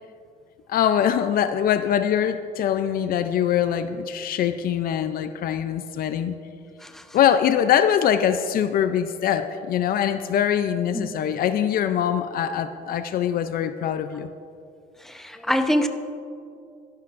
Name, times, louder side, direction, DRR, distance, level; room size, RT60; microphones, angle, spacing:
voice 1, 0.7-6.3 7.1-14.3, left 9 dB, 60° left, 10 dB, 0.5 m, -23 dB
voice 2, 6.8-7.2 10.9-11.1 15.0-15.9, equal, ahead, 6 dB, 0.8 m, -25 dB
22.0 x 11.5 x 2.6 m, 2.5 s
cardioid pair, 110°, 17 cm